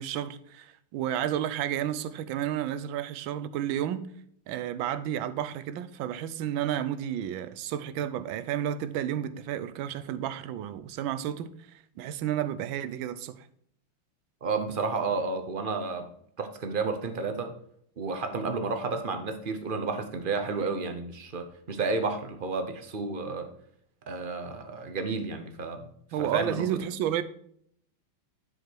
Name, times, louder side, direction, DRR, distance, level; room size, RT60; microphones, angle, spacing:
voice 1, 0.0-4.1 4.5-11.5 12.0-13.5 26.1-27.2, right 10 dB, 80° right, 13 dB, 1.4 m, -31 dB
voice 2, 14.4-16.1 16.4-17.5 18.0-23.5 24.1-25.9 26.2-26.7, right 4 dB, 50° right, 6 dB, 0.6 m, -31 dB
10.5 x 4.8 x 4.5 m, 0.67 s
omnidirectional pair, 2.2 m